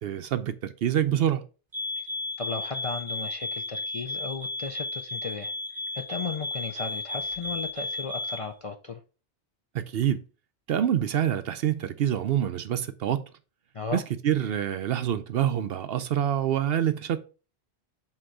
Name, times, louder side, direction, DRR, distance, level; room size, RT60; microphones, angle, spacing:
voice 1, 0.0-1.4 9.7-10.2 10.7-13.2 13.9-17.2, right 10 dB, 65° right, 0.7 m, -26 dB
sound 1, 1.7-8.5, left 2 dB, 25° right, 0.8 m, -34 dB
voice 2, 2.4-5.5 5.9-9.0 13.7-14.0, left 4 dB, 45° left, 0.4 m, -35 dB
7.7 x 3.0 x 4.8 m
omnidirectional pair, 1.2 m